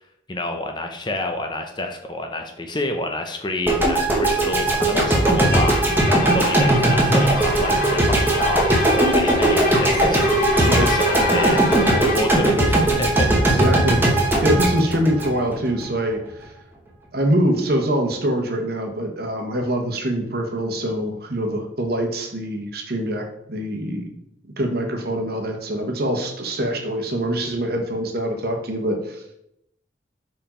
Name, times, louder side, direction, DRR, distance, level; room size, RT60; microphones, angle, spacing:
voice 1, 0.3-10.2 10.6-13.3, left 2 dB, 25° left, 5 dB, 0.6 m, -28 dB
sound 1, 3.7-15.9, right 1 dB, 10° right, 1.0 m, -19 dB
Bowed string instrument, 5.4-12.3, left 2 dB, 45° left, 1.2 m, -26 dB
sound 2, 6.2-12.1, left 2 dB, 65° left, 1.4 m, -31 dB
voice 2, 13.5-16.5 17.1-24.1 24.6-29.4, right 1 dB, 50° right, 3 dB, 1.1 m, -24 dB
5.3 x 4.6 x 4.3 m, 0.78 s
head